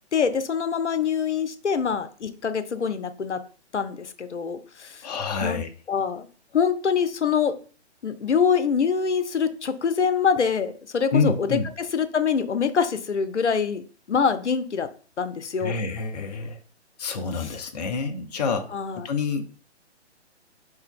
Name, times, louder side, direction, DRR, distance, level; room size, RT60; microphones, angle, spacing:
voice 1, 0.1-3.4 3.7-5.1 5.4-5.6 5.9-6.3 6.5-7.5 8.0-13.8 14.1-14.9 15.2-15.8 17.4-17.6 18.7-19.1, left 6 dB, 75° left, 11 dB, 0.6 m, -25 dB
voice 2, 5.0-5.7 11.1-11.7 15.6-16.6 17.0-19.4, left 4 dB, 35° left, 6 dB, 0.5 m, -27 dB
4.5 x 2.7 x 3.7 m, 0.40 s
figure-of-eight pair, 130°, 35 cm